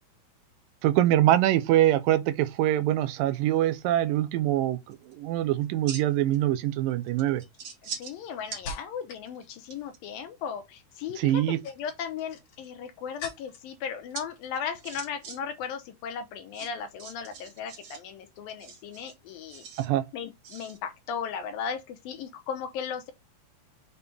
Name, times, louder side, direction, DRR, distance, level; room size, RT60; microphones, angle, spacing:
voice 1, 0.8-7.4 11.2-11.6 19.8-20.1, right 13 dB, 80° right, 2.2 m, -24 dB
sound 1, 4.9-5.1 5.6-6.4 6.6-6.7 7.2-8.2 8.5-8.6 9.1-10.0 12.1-12.7 14.1-14.2 14.5-15.4 15.6-15.7 16.5-18.0 18.5-19.9 20.4-20.8, right 6 dB, 50° right, 2.3 m, -41 dB
sound 2, 5.8-6.2 6.9-9.3 9.6-10.1 11.3-13.8 14.1-14.7 15.0-15.3, left 4 dB, 60° left, 3.3 m, -45 dB
voice 2, 7.8-19.7 20.1-23.1, left 7 dB, 75° left, 2.7 m, -36 dB
6.9 x 4.1 x 3.4 m
omnidirectional pair, 4.2 m